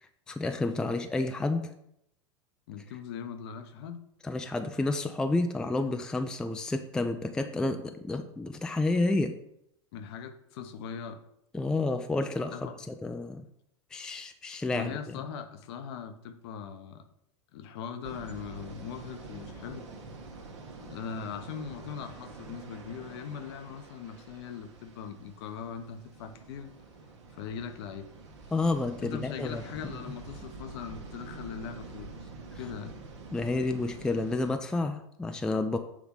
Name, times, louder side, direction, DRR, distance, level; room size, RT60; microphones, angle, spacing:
voice 1, 0.3-1.7 4.2-9.3 11.5-12.5 12.9-13.4 13.9-15.2 28.5-29.6 33.3-35.8, left 2 dB, 5° left, 7 dB, 0.4 m, -30 dB
voice 2, 2.7-4.0 9.9-11.2 12.5-12.8 14.7-17.0 17.5-19.9 20.7-26.7 27.3-28.1 29.0-32.3 32.6-33.0, left 7 dB, 55° left, 8 dB, 0.8 m, -40 dB
sound 1, 18.0-34.6, right 3 dB, 65° right, 1.2 m, -47 dB
7.3 x 3.3 x 5.5 m, 0.75 s
figure-of-eight pair, 90°, 16 cm